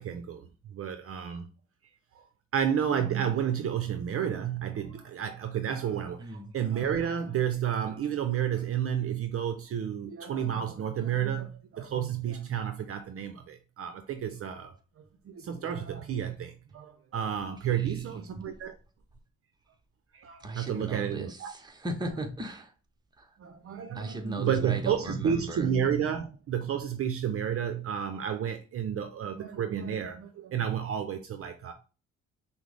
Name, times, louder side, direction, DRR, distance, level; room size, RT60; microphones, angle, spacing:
voice 1, 0.0-1.5 2.1-2.3 2.5-18.7 20.1-21.5 23.4-31.7, right 9 dB, 50° right, 0.5 m, -31 dB
voice 2, 6.2-6.5 17.7-18.2 20.4-22.7 23.2-23.3 23.9-25.7, right 1 dB, 15° right, 0.8 m, -37 dB
5.9 x 2.0 x 3.3 m
cardioid pair, 90°, 30 cm